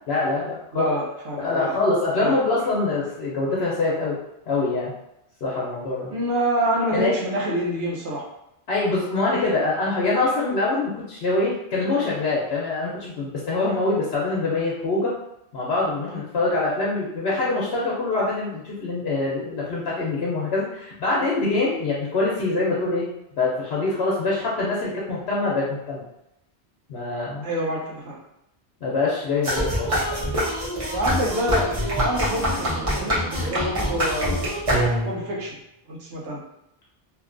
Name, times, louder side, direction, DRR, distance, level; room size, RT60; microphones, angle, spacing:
voice 1, 0.1-0.9 1.4-4.2 4.5-4.9 5.4-6.1 6.9-7.1 8.7-15.1 15.5-23.1 23.4-26.0 26.9-27.4 28.8-29.9, left 3 dB, 70° left, -5 dB, 0.8 m, -24 dB
voice 2, 0.7-1.7 2.2-2.4 6.1-8.2 27.4-28.2 30.9-34.6 35.0-35.6 35.9-36.4, right 1 dB, 80° right, -4 dB, 1.0 m, -27 dB
sound 1, 29.4-35.3, equal, 35° right, 0.8 m, -25 dB
2.7 x 2.2 x 2.4 m, 0.84 s
omnidirectional pair, 1.2 m